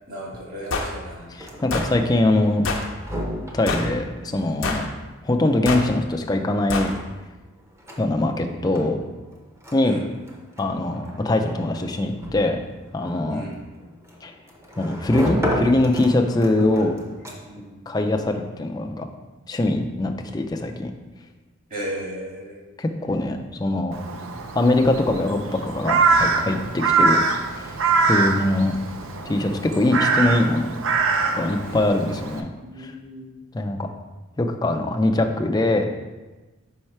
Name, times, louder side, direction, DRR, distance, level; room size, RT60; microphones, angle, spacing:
voice 1, 0.1-1.3 9.8-10.0 13.3-13.5 16.7-16.9 17.4-17.7 21.7-22.6 31.6-31.8 32.5-33.2, right 1 dB, 40° right, -3 dB, 1.7 m, -35 dB
sound 1, 0.7-0.9 1.7-1.9 2.6-2.9 3.7-3.9 4.6-4.9 5.7-5.9 6.7-6.9, left 3 dB, 65° left, 0.7 m, -26 dB
sound 2, 1.2-17.7, equal, 15° right, 0.7 m, -35 dB
voice 2, 1.3-2.7 3.5-4.9 5.2-6.9 8.0-9.0 9.7-10.0 10.6-12.6 12.9-13.4 14.2-14.3 14.8-16.9 17.9-19.1 19.5-20.9 22.8-24.0 24.5-27.2 27.5-27.7 28.0-28.8 29.2-30.8 31.3-32.5 32.8-32.9 33.5-33.9 34.4-35.9, left 2 dB, 20° left, 4 dB, 0.4 m, -22 dB
Crow, 23.9-32.4, right 4 dB, 70° right, 0.5 m, -23 dB
5.5 x 4.5 x 4.3 m, 1.2 s
head